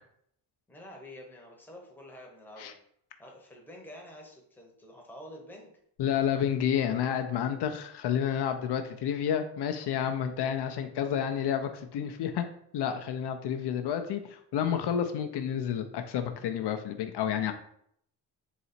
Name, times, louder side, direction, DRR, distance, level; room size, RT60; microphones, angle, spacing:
voice 1, 0.7-2.7 3.2-5.7, left 1 dB, 5° left, -1 dB, 0.8 m, -48 dB
voice 2, 6.0-12.5 12.7-17.5, left 9 dB, 70° left, 7 dB, 0.5 m, -30 dB
4.0 x 2.9 x 4.2 m, 0.69 s
wide cardioid pair, 165°, 42 cm